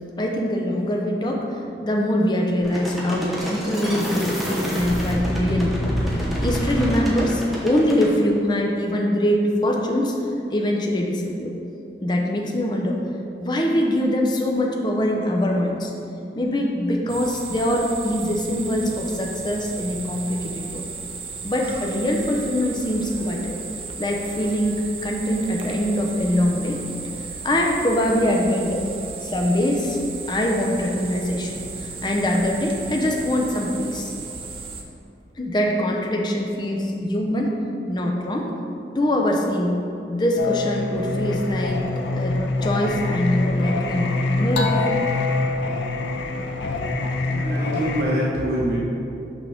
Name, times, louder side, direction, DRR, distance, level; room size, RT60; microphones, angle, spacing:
voice 1, 0.2-1.5 1.8-10.2 10.5-11.5 12.0-13.0 13.4-15.9 16.3-20.8 21.4-23.6 24.0-26.8 27.4-28.8 29.2-30.0 30.3-34.1 35.4-37.6 37.9-38.5 38.9-39.8 40.1-41.8 42.1-42.3 42.6-44.8 46.6-46.7, left 1 dB, 25° left, 0 dB, 0.5 m, -23 dB
sound 1, 2.6-8.1, equal, ahead, 0.8 m, -27 dB
sound 2, 17.1-34.8, right 5 dB, 30° right, 0.4 m, -35 dB
Singing, 40.4-48.0, left 2 dB, 90° left, 0.5 m, -24 dB
voice 2, 47.2-48.8, equal, 70° right, -6 dB, 1.0 m, -25 dB
6.0 x 5.4 x 3.4 m, 2.8 s
head